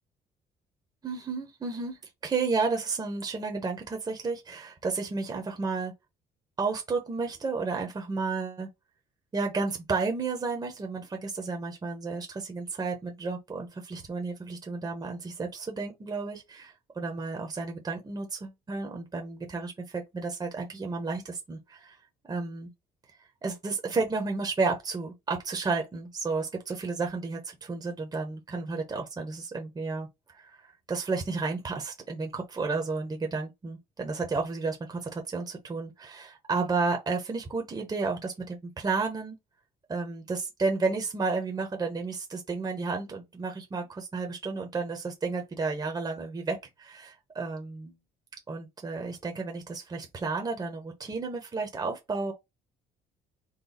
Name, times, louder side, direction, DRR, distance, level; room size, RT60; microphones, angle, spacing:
voice 1, 1.0-5.9 6.6-8.7 9.3-22.0 22.3-22.7 23.4-30.1 30.3-30.6 30.9-39.4 39.9-48.0 48.5-52.3, right 4 dB, 25° right, 1.0 m, -32 dB
4.1 x 2.2 x 4.0 m
cardioid pair, 110°, 17 cm